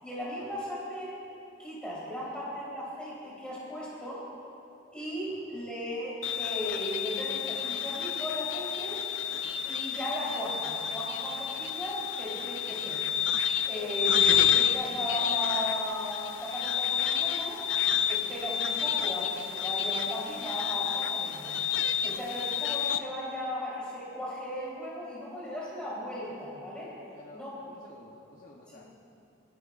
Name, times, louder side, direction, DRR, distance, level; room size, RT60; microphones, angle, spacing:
voice 1, 0.0-1.2 1.6-4.2 4.9-9.0 9.6-13.0 13.6-17.6 18.1-21.6 22.0-26.9 27.3-27.5, equal, 5° left, -8 dB, 3.8 m, -36 dB
voice 2, 5.3-5.7 27.1-29.0, left 2 dB, 40° left, -3 dB, 0.9 m, -53 dB
sound 1, 6.2-23.0, left 9 dB, 65° left, 0.5 m, -30 dB
30.0 x 10.0 x 2.5 m, 2.7 s
head